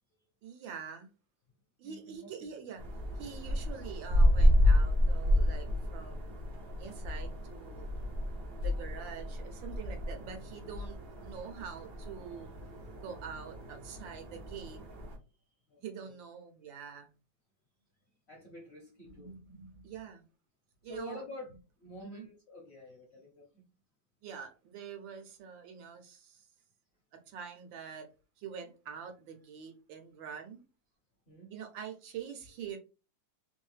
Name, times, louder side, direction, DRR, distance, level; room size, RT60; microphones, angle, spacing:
voice 1, 0.4-1.1 1.8-2.8 3.2-6.4 6.8-7.9 8.6-12.5 13.0-14.8 15.8-17.1 19.1-20.2 20.8-21.2 22.0-22.3 24.2-26.4 27.1-28.1 28.4-30.6 31.5-32.8, right 7 dB, 80° right, 1.5 m, -45 dB
voice 2, 1.8-2.5 15.7-16.2 18.3-19.3 20.9-21.5 21.8-23.6 31.3-31.5, equal, 55° left, 0.7 m, -48 dB
sound 1, 2.8-15.2, left 1 dB, 60° right, 0.6 m, -30 dB
3.5 x 2.7 x 3.2 m
omnidirectional pair, 2.0 m